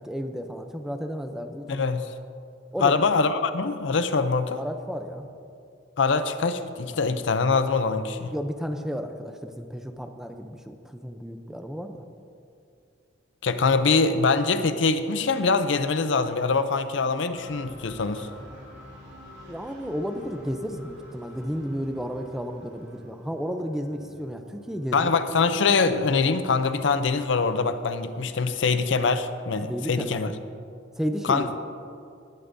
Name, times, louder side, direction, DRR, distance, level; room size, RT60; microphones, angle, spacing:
voice 1, 0.0-1.8 2.7-3.0 4.6-5.3 8.3-12.1 19.5-25.1 29.7-30.3 31.0-31.5, equal, ahead, 6 dB, 0.5 m, -32 dB
voice 2, 1.7-2.1 2.8-4.6 6.0-8.3 13.4-18.3 24.9-30.3 31.3-31.5, left 4 dB, 70° left, 11 dB, 0.5 m, -23 dB
sound 1, 17.3-29.1, equal, 70° right, 2.4 m, -49 dB
18.0 x 11.5 x 2.7 m, 2.4 s
head